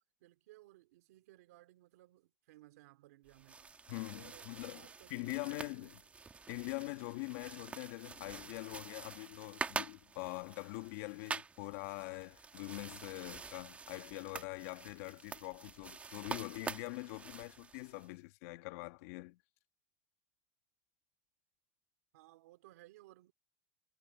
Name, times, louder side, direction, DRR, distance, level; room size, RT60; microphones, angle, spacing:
voice 1, 0.2-3.8 4.1-6.1 22.1-23.3, right 17 dB, 85° right, 3.1 m, -61 dB
sound 1, 3.3-18.1, right 4 dB, 15° right, 1.6 m, -47 dB
voice 2, 3.9-6.0 6.5-19.4, left 23 dB, 70° left, 1.8 m, -44 dB
supercardioid pair, 135°, 8 cm